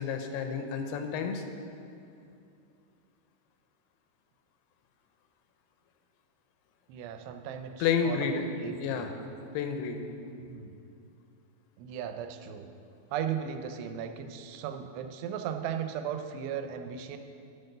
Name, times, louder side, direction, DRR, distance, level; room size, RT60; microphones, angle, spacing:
voice 1, 0.0-1.4 7.8-8.4 8.8-9.1 9.5-10.0, left 6 dB, 80° left, 5 dB, 2.5 m, -30 dB
voice 2, 6.9-9.1 10.4-10.7 11.8-12.7 13.1-17.2, right 8 dB, 90° right, 7 dB, 2.7 m, -37 dB
11.5 x 4.5 x 6.5 m, 2.6 s
omnidirectional pair, 4.7 m